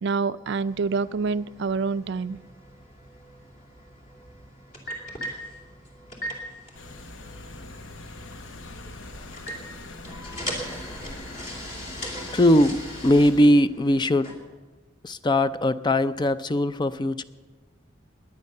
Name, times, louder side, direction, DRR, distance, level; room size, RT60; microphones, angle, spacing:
voice 1, 0.0-2.4, right 4 dB, 60° right, 15 dB, 0.4 m, -27 dB
sound 1, 0.7-14.3, equal, 40° left, 2.9 m, -40 dB
sound 2, 6.7-13.5, left 2 dB, 70° left, 1.1 m, -42 dB
voice 2, 12.3-14.3 15.0-17.2, left 1 dB, 20° left, 14 dB, 0.4 m, -20 dB
20.0 x 9.6 x 6.6 m, 1.3 s
head